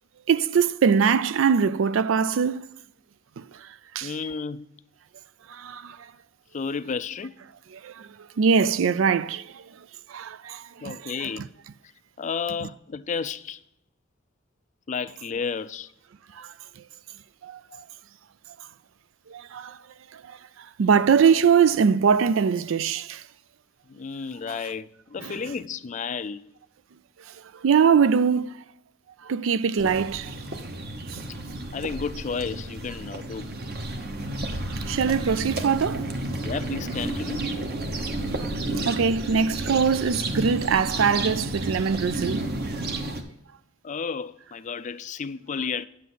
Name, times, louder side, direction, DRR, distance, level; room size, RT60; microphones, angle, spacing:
voice 1, 0.3-2.6 3.4-4.1 5.5-6.1 7.7-11.5 12.6-12.7 16.3-16.8 17.4-17.6 19.3-19.8 20.1-23.3 25.2-25.4 27.3-28.6 29.2-30.4 31.1-31.2 34.6-36.1 38.4-42.5, right 6 dB, 75° right, 0.4 m, -23 dB
voice 2, 4.0-4.7 6.5-7.3 10.8-11.5 12.2-13.6 14.9-15.9 17.7-17.8 23.9-26.4 31.7-33.5 36.4-37.4 43.8-45.9, left 5 dB, 40° left, 0.4 m, -32 dB
sound 1, 29.8-43.2, right 1 dB, 50° right, 1.0 m, -31 dB
9.2 x 7.6 x 3.9 m
head